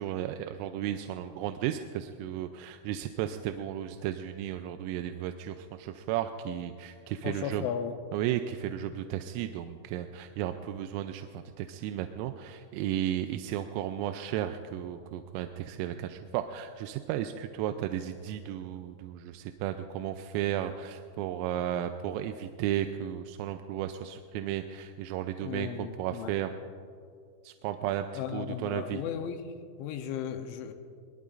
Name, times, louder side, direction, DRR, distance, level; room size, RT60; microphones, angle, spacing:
voice 1, 0.0-7.7 8.1-26.5 27.4-29.0, right 11 dB, 90° right, 7 dB, 3.2 m, -34 dB
voice 2, 7.2-8.0 25.4-26.3 28.1-29.5 29.8-30.7, left 8 dB, 80° left, 7 dB, 3.0 m, -35 dB
22.5 x 22.0 x 2.5 m, 2.3 s
omnidirectional pair, 5.8 m